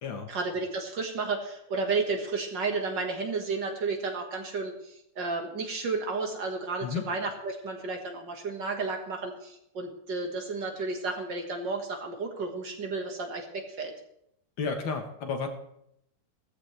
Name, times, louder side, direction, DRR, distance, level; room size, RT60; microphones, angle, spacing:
voice 1, 0.3-13.9, right 3 dB, 55° right, 2 dB, 2.3 m, -32 dB
voice 2, 14.6-15.5, left 5 dB, 60° left, 5 dB, 1.9 m, -32 dB
17.5 x 14.0 x 3.3 m, 0.78 s
omnidirectional pair, 2.4 m